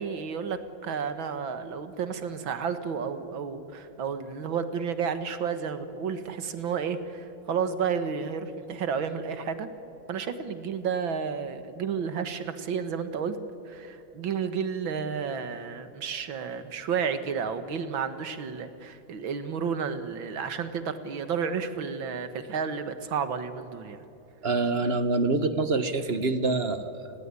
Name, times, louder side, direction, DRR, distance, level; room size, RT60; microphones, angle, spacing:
voice 1, 0.0-9.7 10.1-13.4 13.7-24.0, right 6 dB, 80° right, 10 dB, 2.3 m, -31 dB
voice 2, 24.4-27.2, right 3 dB, 35° right, 11 dB, 1.2 m, -26 dB
30.0 x 20.0 x 9.8 m, 2.9 s
omnidirectional pair, 2.1 m